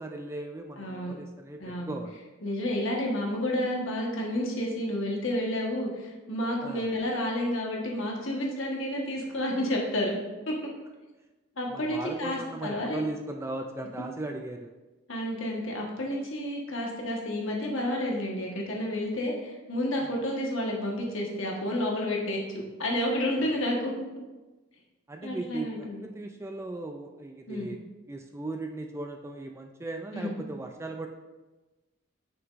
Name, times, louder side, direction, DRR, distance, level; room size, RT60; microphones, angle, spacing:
voice 1, 0.0-2.2 6.6-6.9 11.7-14.7 25.1-27.8 28.1-31.1, right 2 dB, 10° right, 4 dB, 0.3 m, -37 dB
voice 2, 0.8-1.1 1.6-1.9 2.4-10.1 10.5-10.6 11.6-13.0 15.1-23.9 25.2-26.0 27.5-27.7 30.1-30.3, left 1 dB, 65° left, -1 dB, 1.4 m, -30 dB
9.3 x 6.2 x 2.5 m, 1.1 s
head